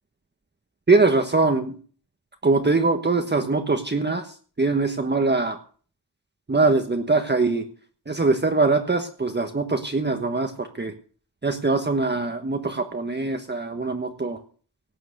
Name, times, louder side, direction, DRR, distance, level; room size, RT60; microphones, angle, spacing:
voice 1, 0.9-1.8 2.4-5.6 6.5-7.7 8.1-10.9 11.4-14.4, right 3 dB, 25° right, 6 dB, 1.3 m, -22 dB
17.5 x 9.1 x 6.6 m, 0.43 s
wide cardioid pair, 125°, 40 cm